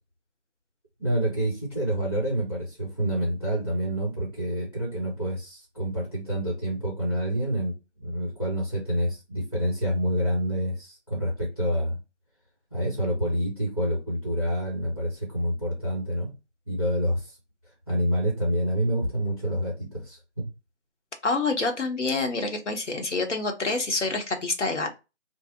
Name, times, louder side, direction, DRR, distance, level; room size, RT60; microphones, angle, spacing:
voice 1, 1.0-12.0 12.7-16.3 16.7-17.4 17.9-20.5, equal, 20° left, 1.0 m, -27 dB
voice 2, 21.2-25.0, left 3 dB, 75° left, 1.0 m, -27 dB
2.6 x 2.0 x 3.7 m
figure-of-eight pair, 180°, 36 cm